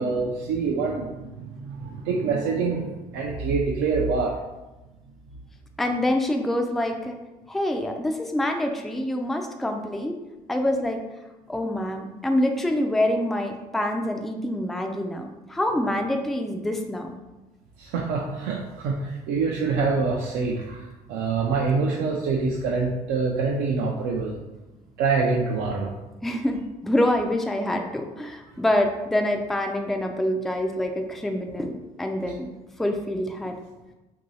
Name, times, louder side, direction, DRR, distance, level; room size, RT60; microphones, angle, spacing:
voice 1, 0.0-4.4 17.8-24.3 25.0-25.9, right 4 dB, 65° right, -2 dB, 0.4 m, -25 dB
voice 2, 5.8-7.2 7.5-10.2 10.5-11.0 11.5-17.2 26.2-32.5 32.8-33.5, left 1 dB, ahead, 3 dB, 0.3 m, -26 dB
2.9 x 2.6 x 2.7 m, 1.1 s
hypercardioid pair, 55°, 20 cm